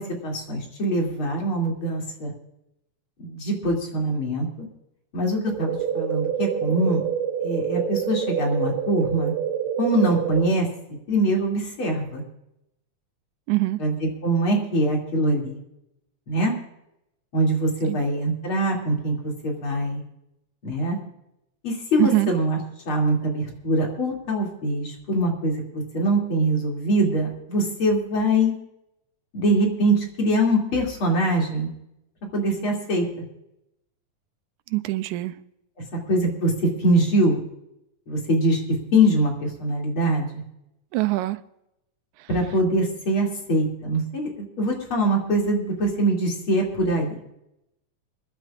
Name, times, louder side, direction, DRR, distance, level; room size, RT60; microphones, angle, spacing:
voice 1, 0.0-2.3 3.2-4.5 5.1-7.0 7.4-9.3 9.8-10.7 11.1-12.2 13.8-15.6 16.3-16.5 17.3-20.0 20.6-21.0 21.6-22.6 22.9-28.5 29.3-31.7 32.3-33.1 36.1-37.4 38.1-38.6 38.9-40.4 42.3-47.2, right 1 dB, 45° left, 3.4 m, -23 dB
sound 1, 5.5-10.5, right 9 dB, 70° right, 2.7 m, -27 dB
voice 2, 13.5-13.8 17.9-18.0 22.0-22.3 34.7-35.3 40.9-41.4, right 19 dB, 85° right, 2.1 m, -23 dB
26.5 x 11.5 x 2.5 m
omnidirectional pair, 3.4 m